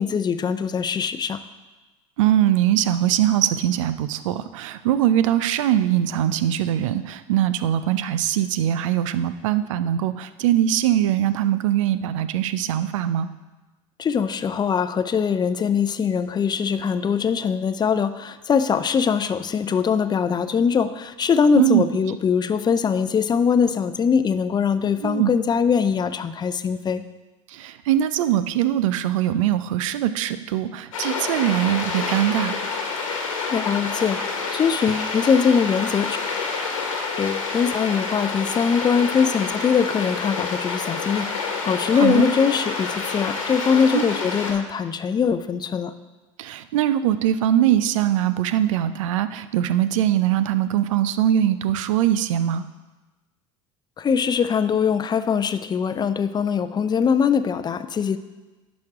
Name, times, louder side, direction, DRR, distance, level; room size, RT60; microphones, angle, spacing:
voice 1, 0.0-1.4 14.0-27.0 33.5-36.2 37.2-45.9 54.0-58.2, left 6 dB, 25° left, 12 dB, 0.5 m, -22 dB
voice 2, 2.2-13.3 21.6-21.8 25.0-25.3 27.5-32.6 41.9-42.3 43.9-44.1 46.4-52.6, right 11 dB, 75° right, 13 dB, 0.5 m, -22 dB
sound 1, 30.9-44.5, left 4 dB, 85° left, 1.5 m, -28 dB
10.5 x 6.2 x 3.6 m, 1.2 s
hypercardioid pair, 75°, 17 cm